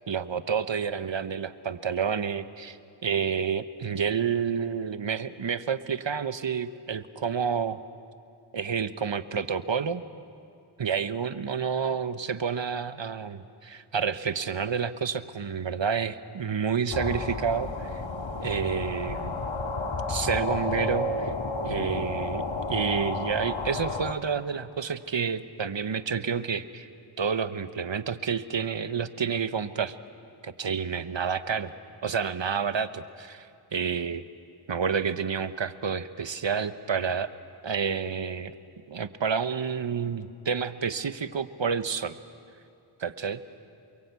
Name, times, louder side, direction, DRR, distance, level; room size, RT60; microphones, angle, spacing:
voice 1, 0.1-2.8 3.0-7.8 8.5-10.0 10.8-18.0 18.4-19.5 20.1-21.3 21.6-22.4 22.7-26.9 27.2-30.0 30.4-31.7 32.0-34.2 34.7-37.3 37.6-38.5 38.9-42.1 43.0-43.4, right 6 dB, 60° right, 12 dB, 1.1 m, -29 dB
sound 1, 16.9-24.1, left 2 dB, 65° left, 1.8 m, -31 dB
29.0 x 23.0 x 8.3 m, 2.6 s
wide cardioid pair, 45°, 50 cm